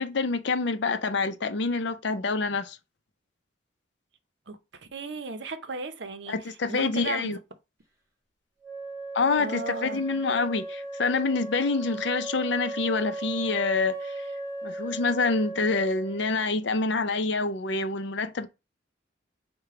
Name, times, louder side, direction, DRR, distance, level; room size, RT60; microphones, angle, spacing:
voice 1, 0.0-2.8 6.3-7.4 9.1-14.2 14.6-18.5, left 3 dB, 60° left, 0.5 m, -27 dB
voice 2, 4.9-6.4 6.7-7.4 9.3-10.0, right 3 dB, 60° right, 0.7 m, -35 dB
Wind instrument woodwind instrument, 8.6-16.4, right 2 dB, 15° right, 1.2 m, -36 dB
4.9 x 2.2 x 4.7 m
head